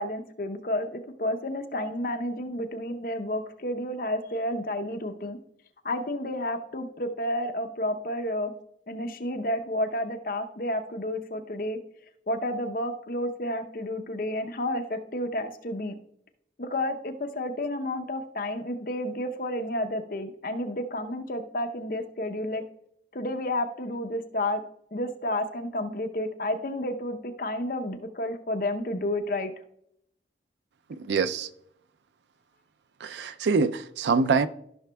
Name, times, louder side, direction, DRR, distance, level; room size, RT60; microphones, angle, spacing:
voice 1, 0.0-5.4 5.8-8.5 8.9-11.8 12.3-15.9 16.6-22.6 23.1-24.6 24.9-29.5, left 1 dB, 50° left, 0.7 m, -31 dB
voice 2, 30.9-31.5 33.0-34.5, right 4 dB, 75° right, 0.4 m, -25 dB
13.5 x 5.9 x 2.3 m
head